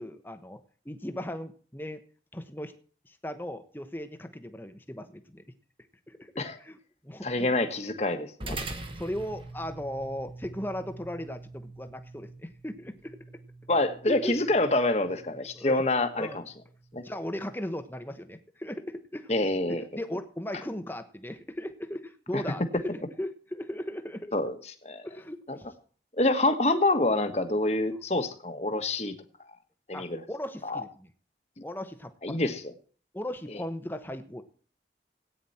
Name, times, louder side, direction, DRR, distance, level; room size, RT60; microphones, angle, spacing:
voice 1, 0.0-2.0 2.3-2.7 3.0-5.4 6.1-6.8 7.0-7.6 8.4-8.6 8.9-13.2 14.1-14.5 15.5-15.8 16.2-16.4 16.9-19.3 19.7-24.3 25.0-25.7 29.9-31.1 31.6-32.4 33.1-34.4, left 1 dB, 10° left, 9 dB, 1.0 m, -37 dB
voice 2, 7.2-8.6 13.7-16.4 16.9-17.0 19.3-19.8 22.3-22.4 24.3-24.6 24.8-25.0 25.5-25.6 26.2-29.1 29.9-30.2 30.6-30.8 32.2-32.7, left 2 dB, 35° left, 7 dB, 1.4 m, -26 dB
sound 1, 8.4-17.1, right 2 dB, 30° right, 1.4 m, -44 dB
17.0 x 9.4 x 4.3 m, 0.43 s
head